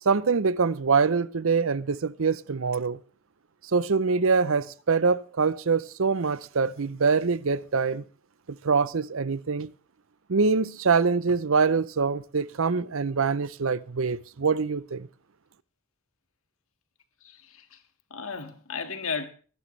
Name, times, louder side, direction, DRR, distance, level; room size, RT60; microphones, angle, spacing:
voice 1, 0.0-3.0 3.7-8.0 8.5-9.7 10.3-15.1, right 5 dB, 65° right, 0.6 m, -24 dB
voice 2, 17.2-17.8 18.1-19.3, left 5 dB, 70° left, 1.9 m, -35 dB
24.0 x 11.5 x 3.3 m
head